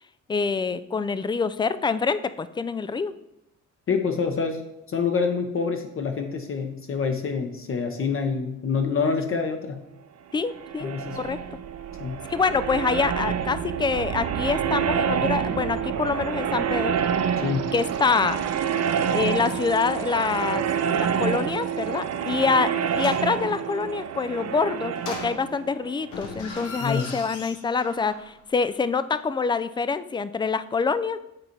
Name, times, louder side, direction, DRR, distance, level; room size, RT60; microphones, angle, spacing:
voice 1, 0.3-3.1 10.3-11.6 12.3-17.0 17.7-18.4 19.0-31.2, left 5 dB, 15° left, 14 dB, 0.3 m, -26 dB
voice 2, 3.9-4.6 4.9-9.8 10.8-11.2 12.0-12.2 17.4-17.7 26.8-27.1, left 5 dB, 45° left, 4 dB, 0.9 m, -26 dB
sound 1, 10.4-27.0, right 8 dB, 55° right, 0.6 m, -28 dB
sound 2, 22.9-23.3 24.9-25.7 26.1-28.3 28.6-28.7, left 3 dB, 85° left, 1.2 m, -39 dB
7.9 x 4.0 x 4.5 m, 0.85 s
cardioid pair, 90°, 30 cm